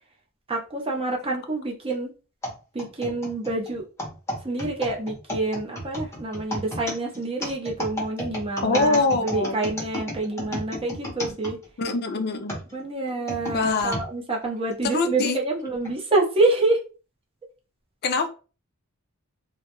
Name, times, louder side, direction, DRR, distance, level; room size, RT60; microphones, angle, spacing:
voice 1, 0.5-2.1 2.7-3.8 4.4-11.6 12.7-16.8, right 2 dB, 25° right, 0.6 m, -27 dB
sound 1, 2.4-12.0 12.5-14.1 14.7-14.8 15.7-15.9, equal, 15° left, 0.7 m, -33 dB
voice 2, 8.6-9.6 11.8-12.5 13.5-14.0 14.8-15.4 18.0-18.3, left 3 dB, 45° left, 0.4 m, -24 dB
2.2 x 2.0 x 2.9 m
head